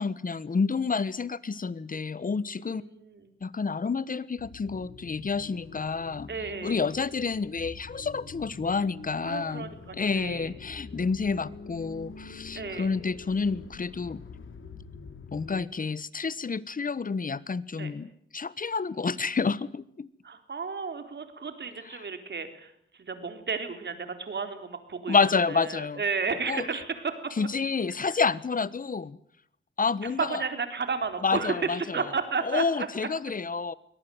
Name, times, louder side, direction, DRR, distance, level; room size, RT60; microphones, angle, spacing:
voice 1, 0.0-2.8 3.4-6.3 6.6-9.6 9.9-14.2 15.3-20.1 21.9-22.1 25.1-26.0 26.5-26.6 27.4-29.2 29.8-30.4 31.2-32.1 32.4-33.7, left 5 dB, 40° left, 1.2 m, -29 dB
voice 2, 2.6-3.3 6.3-6.8 9.2-10.5 12.5-12.9 17.8-17.9 20.2-27.2 30.0-32.9, right 5 dB, 60° right, 4.0 m, -33 dB
sound 1, 4.4-15.6, left 5 dB, 75° left, 3.0 m, -45 dB
23.5 x 18.5 x 9.4 m
cardioid pair, 75°, 21 cm